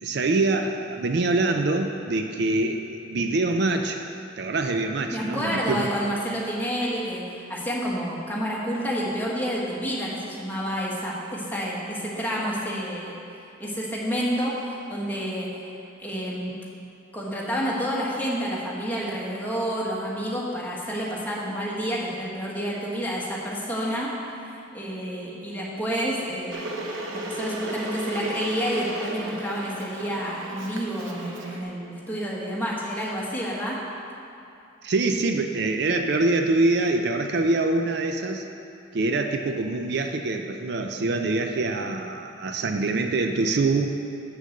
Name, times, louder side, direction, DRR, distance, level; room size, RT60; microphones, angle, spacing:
voice 1, 0.0-4.0 4.4-5.9 34.8-38.5 38.9-43.9, right 2 dB, 55° right, 5 dB, 0.4 m, -24 dB
voice 2, 5.1-13.1 13.6-15.5 16.0-16.5 17.1-24.1 24.7-26.6 27.1-33.8, equal, 10° left, -6 dB, 1.4 m, -29 dB
Water / Boiling, 26.5-31.6, right 1 dB, 85° right, 1.0 m, -34 dB
7.9 x 6.6 x 6.4 m, 2.6 s
head